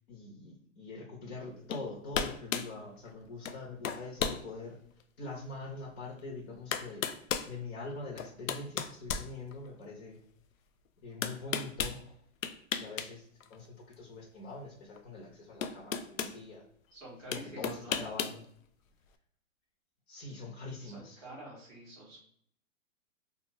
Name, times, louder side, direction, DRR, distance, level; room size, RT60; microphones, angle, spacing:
voice 1, 0.1-4.8 5.2-10.2 11.0-12.2 12.8-16.6 17.3-18.4 20.1-21.3, left 3 dB, 50° left, -3 dB, 1.0 m, -44 dB
sound 1, 1.7-1.9 2.1-2.7 3.5-3.6 3.8-4.4 5.0-5.1 6.2-6.3 6.7-7.5 8.2-9.9 11.2-12.0 12.4-13.1 13.4-13.6 15.0-15.1 15.6-16.4 17.3-18.4, left 7 dB, 75° left, 0.5 m, -34 dB
voice 2, 16.9-18.0 20.3-20.4 20.8-22.2, right 1 dB, ahead, -16 dB, 0.4 m, -48 dB
2.5 x 2.4 x 3.0 m, 0.67 s
hypercardioid pair, 155°, 40 cm